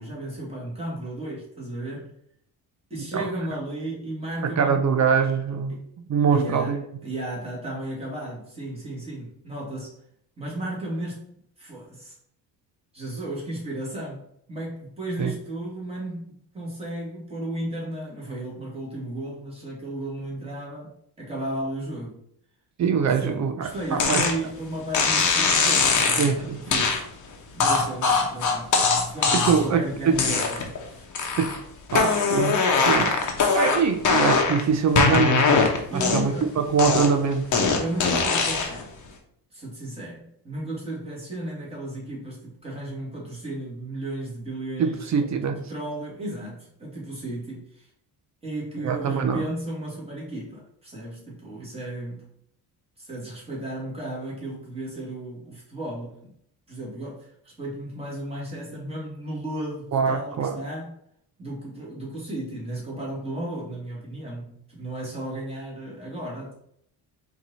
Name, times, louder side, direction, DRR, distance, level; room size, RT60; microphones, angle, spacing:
voice 1, 0.0-2.1 2.9-4.8 5.7-5.9 6.3-6.7 7.0-9.9 10.4-11.3 11.6-12.2 12.9-20.9 21.2-22.2 23.2-27.1 27.5-31.0 31.9-32.1 35.9-36.5 37.8-38.9 39.5-47.9 48.4-52.3 53.0-56.3 56.7-60.9 61.4-66.6, right 1 dB, 15° right, -5 dB, 1.8 m, -34 dB
voice 2, 4.4-5.8 6.1-6.8 15.2-15.3 22.8-24.3 26.2-26.6 29.4-30.2 31.4-31.5 31.9-33.1 33.5-35.6 35.9-37.5 44.8-45.6 48.8-49.5 59.9-60.6, right 6 dB, 45° right, 7 dB, 0.4 m, -23 dB
sound 1, 24.0-24.3 24.9-26.3 26.7-27.0 27.6-29.7 30.1-30.8 31.1-31.6 31.9-34.6 35.0-36.4 36.8-38.8, left 4 dB, 45° left, 0.9 m, -21 dB
4.5 x 2.8 x 3.9 m, 0.69 s
cardioid pair, 140°, 41 cm